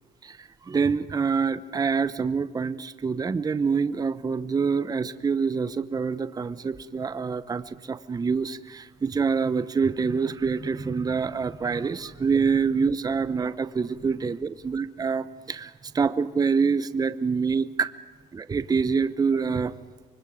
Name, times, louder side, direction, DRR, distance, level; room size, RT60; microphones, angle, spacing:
voice 1, 0.2-17.9 18.3-19.7, right 5 dB, 20° right, 14 dB, 0.8 m, -26 dB
25.0 x 24.0 x 9.3 m, 1.3 s
cardioid pair, 110°, 17 cm